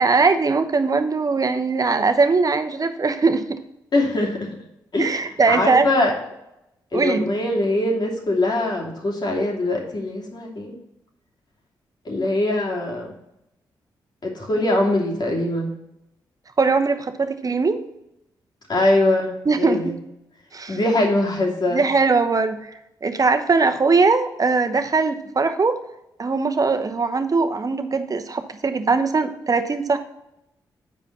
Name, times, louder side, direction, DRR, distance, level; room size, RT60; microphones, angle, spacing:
voice 1, 0.0-3.6 5.0-5.9 6.9-7.3 16.6-17.8 19.4-19.9 20.5-20.8 21.7-22.7 23.0-25.8 26.2-30.0, right 4 dB, 40° right, 8 dB, 1.0 m, -20 dB
voice 2, 3.9-4.4 4.9-5.1 5.5-6.1 6.9-10.8 12.0-13.1 14.2-15.7 18.7-19.9 20.7-21.8, left 1 dB, 50° left, -1 dB, 2.8 m, -22 dB
7.1 x 5.0 x 6.7 m, 0.86 s
supercardioid pair, 45°, 9 cm